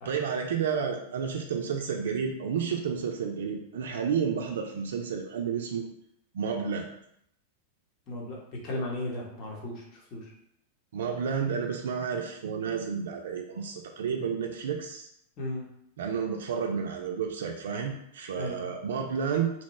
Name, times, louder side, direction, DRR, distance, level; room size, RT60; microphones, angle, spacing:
voice 1, 0.0-5.9 6.3-6.9 10.9-15.1 16.0-19.5, right 6 dB, 75° right, 3 dB, 0.3 m, -31 dB
voice 2, 8.1-8.4 8.6-9.8 10.1-10.3 15.4-15.6 18.4-18.7, left 1 dB, 40° left, -2 dB, 1.0 m, -35 dB
2.8 x 2.1 x 3.0 m, 0.75 s
hypercardioid pair, 110°, 0 cm